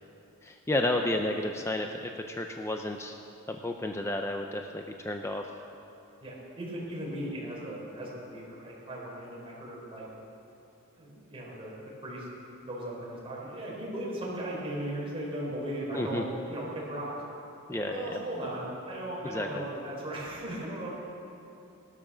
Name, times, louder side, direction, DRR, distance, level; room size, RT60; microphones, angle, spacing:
voice 1, 0.4-3.1 3.5-5.5 15.9-16.2 17.7-18.2 19.2-19.6, left 1 dB, 15° left, 4 dB, 0.6 m, -32 dB
voice 2, 6.2-10.1 11.0-12.3 12.6-17.1 17.7-20.9, right 1 dB, 25° right, -5 dB, 4.5 m, -37 dB
17.5 x 12.0 x 6.2 m, 2.8 s
head